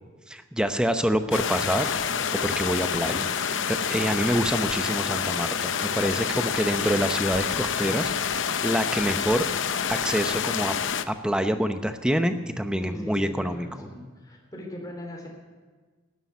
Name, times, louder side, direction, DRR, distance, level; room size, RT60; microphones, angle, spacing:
voice 1, 0.3-1.9 2.4-8.1 8.4-9.4 9.9-10.7 11.1-13.9, equal, 5° right, 8 dB, 0.7 m, -26 dB
sound 1, 1.3-11.0, left 7 dB, 75° left, 0.7 m, -28 dB
voice 2, 12.8-15.3, left 1 dB, 20° left, 0 dB, 3.3 m, -39 dB
13.0 x 11.5 x 9.4 m, 1.4 s
head